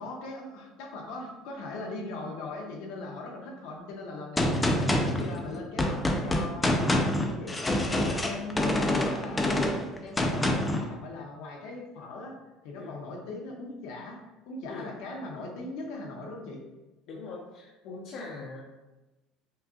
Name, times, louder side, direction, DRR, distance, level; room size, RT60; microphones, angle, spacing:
voice 1, 0.0-9.6 10.0-12.3 12.6-14.2 14.5-16.6, left 2 dB, 70° left, -1 dB, 0.9 m, -40 dB
Gunshot gunfire, 4.4-10.9, left 1 dB, 10° left, 0.4 m, -26 dB
voice 2, 17.1-18.6, left 3 dB, 50° left, -4 dB, 0.6 m, -41 dB
5.5 x 2.3 x 2.6 m, 1.0 s
cardioid pair, 160°, 0 cm